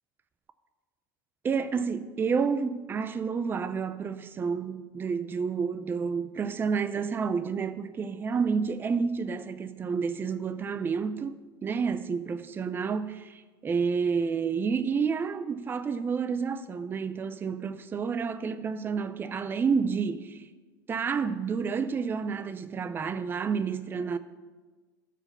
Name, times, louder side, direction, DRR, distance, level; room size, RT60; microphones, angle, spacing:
voice 1, 1.4-20.5 20.9-24.2, right 5 dB, 20° right, 0.5 m, -30 dB
14.0 x 5.0 x 6.6 m
supercardioid pair, 130°, 11 cm